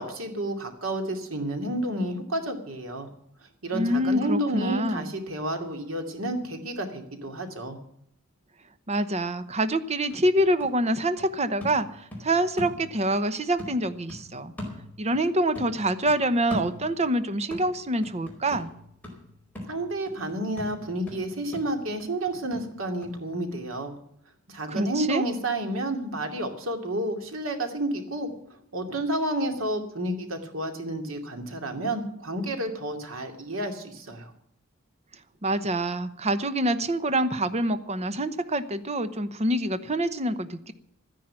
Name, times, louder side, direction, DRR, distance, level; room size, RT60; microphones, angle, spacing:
voice 1, 0.0-3.1 3.6-7.8 19.7-23.9 24.5-28.3 28.7-34.3, right 1 dB, 75° right, 4 dB, 2.6 m, -30 dB
voice 2, 3.7-5.1 8.9-14.5 15.0-18.7 24.7-25.2 35.4-40.7, right 1 dB, 30° right, 11 dB, 0.9 m, -26 dB
sound 1, 10.1-13.3 13.6-15.3 15.5-17.2 17.5-23.2 23.5-23.6, left 1 dB, 10° left, 4.6 m, -40 dB
13.5 x 10.5 x 7.6 m, 0.72 s
head